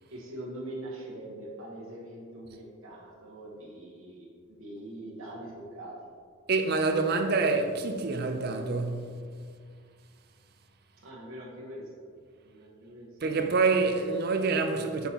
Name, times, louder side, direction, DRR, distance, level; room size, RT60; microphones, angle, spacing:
voice 1, 0.1-5.9 11.0-11.8 12.4-13.2, right 1 dB, 70° right, 1.1 m, -43 dB
voice 2, 6.5-9.2 13.2-15.1, right 4 dB, 45° right, 0.4 m, -26 dB
6.1 x 5.4 x 2.9 m
head